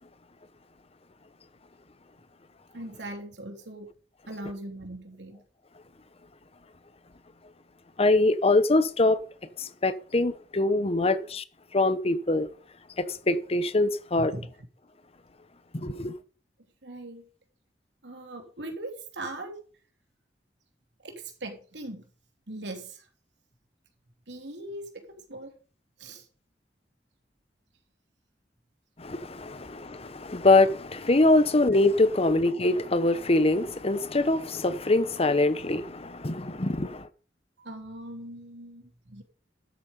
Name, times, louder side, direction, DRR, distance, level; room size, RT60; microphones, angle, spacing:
voice 1, 2.7-3.9 4.3-5.4 11.0-11.2 14.1-14.5 16.8-17.3 18.0-19.6 21.0-22.0 22.5-23.1 24.3-25.5 26.0-26.3 29.5-29.6 37.6-39.2, right 1 dB, 80° right, 3.4 m, -40 dB
voice 2, 8.0-9.2 9.6-11.4 11.7-12.5 13.1-14.3 15.7-16.1 29.0-37.1, left 2 dB, 35° left, 0.9 m, -23 dB
12.5 x 8.7 x 5.5 m
head